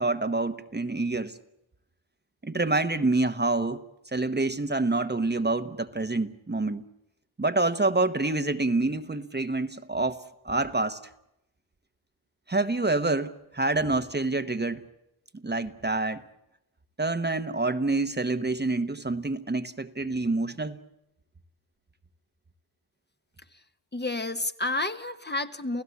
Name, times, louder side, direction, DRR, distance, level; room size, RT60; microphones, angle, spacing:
voice 1, 0.0-1.3 2.4-3.8 4.1-6.8 7.4-11.0 12.5-14.8 15.4-16.2 17.0-20.8, right 2 dB, 20° right, 1.1 m, -27 dB
voice 2, 23.9-25.8, left 2 dB, 20° left, 1.2 m, -30 dB
29.5 x 16.5 x 8.3 m
cardioid pair, 75°, 49 cm